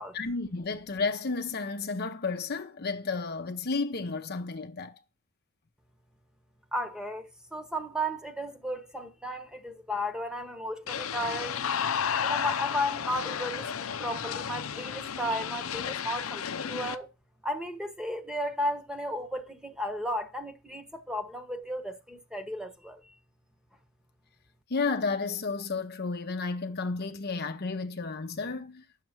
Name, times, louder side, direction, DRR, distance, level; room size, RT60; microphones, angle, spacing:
voice 1, 0.1-5.0 24.7-28.8, left 4 dB, 50° left, 0.8 m, -32 dB
voice 2, 6.7-11.6 12.2-17.1 17.4-23.0, equal, 5° right, 1.2 m, -34 dB
sound 1, 10.9-17.0, left 7 dB, 85° left, 0.6 m, -32 dB
9.2 x 6.6 x 6.1 m
head